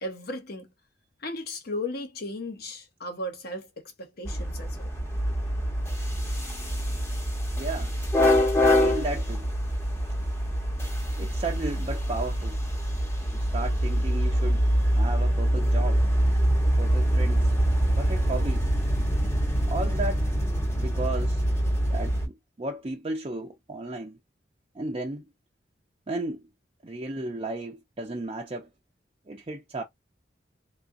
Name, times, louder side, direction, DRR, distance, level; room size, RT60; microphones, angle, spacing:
voice 1, 0.0-0.7 1.2-4.9, left 1 dB, 55° left, 1.0 m, -36 dB
sound 1, 4.2-22.3, equal, 15° left, 0.9 m, -25 dB
voice 2, 7.5-7.9 8.6-9.5 11.2-12.6 13.3-16.0 16.8-17.5 18.0-18.7 19.7-20.2 20.8-21.4 21.9-24.2 24.7-25.3 26.1-26.5 26.8-28.7 29.3-29.8, right 2 dB, 30° right, 0.5 m, -34 dB
3.7 x 2.3 x 2.6 m
head